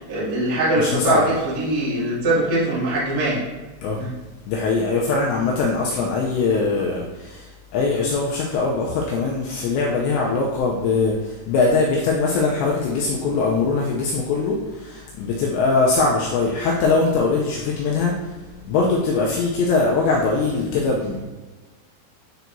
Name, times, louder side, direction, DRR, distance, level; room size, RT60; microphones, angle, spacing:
voice 1, 0.0-3.3 4.0-4.1, right 2 dB, 50° right, -9 dB, 1.1 m, -22 dB
voice 2, 0.8-1.3 3.8-4.0 4.5-21.2, left 3 dB, 85° left, -2 dB, 2.5 m, -22 dB
10.0 x 4.6 x 2.7 m, 1.2 s
omnidirectional pair, 5.9 m